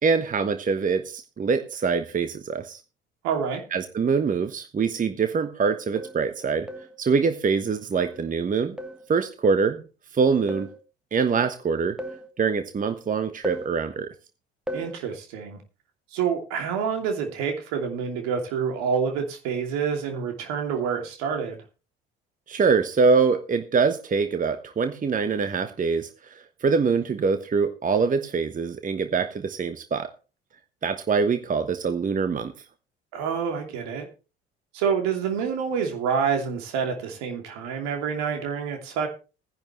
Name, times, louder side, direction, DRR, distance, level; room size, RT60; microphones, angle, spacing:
voice 1, 0.0-2.8 3.7-6.7 7.0-8.7 9.1-9.8 10.1-10.7 11.1-12.0 12.4-14.1 22.5-26.3 26.6-30.1 30.8-32.5, right 5 dB, 25° right, 10 dB, 1.2 m, -24 dB
voice 2, 3.2-3.6 14.7-15.6 16.1-21.6 33.1-34.1 34.7-39.1, right 6 dB, 60° right, 4 dB, 2.9 m, -27 dB
sound 1, 4.9-5.0 6.0-6.3 6.7-7.0 8.0-8.3 8.8-9.1 10.5-10.8 12.0-12.3 13.4-13.8 14.7-15.0, equal, 5° right, 1.6 m, -35 dB
18.0 x 10.5 x 3.2 m, 0.32 s
figure-of-eight pair, 55°, 30 cm